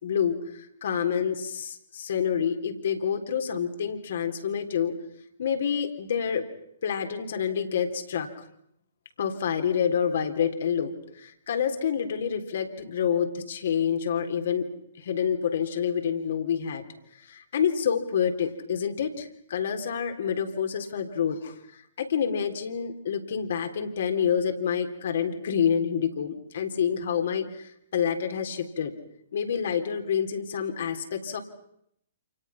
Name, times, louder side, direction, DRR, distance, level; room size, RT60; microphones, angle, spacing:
voice 1, 0.0-4.9 5.4-6.5 6.8-8.3 9.2-14.7 15.0-16.8 17.2-28.9 29.3-31.4, left 7 dB, 55° left, 6 dB, 3.7 m, -28 dB
29.0 x 29.0 x 5.9 m, 0.75 s
figure-of-eight pair, 120°, 0 cm